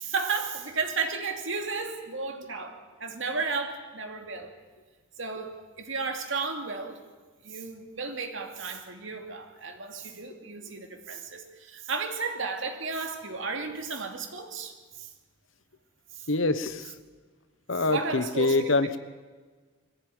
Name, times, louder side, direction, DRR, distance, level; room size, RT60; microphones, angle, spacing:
voice 1, 0.0-4.5 5.2-7.0 7.4-15.1 16.1-16.3 17.8-18.9, right 4 dB, 65° right, 4 dB, 2.6 m, -33 dB
voice 2, 16.3-16.9 17.7-19.0, left 3 dB, 65° left, 13 dB, 1.1 m, -25 dB
22.0 x 15.5 x 9.3 m, 1.4 s
head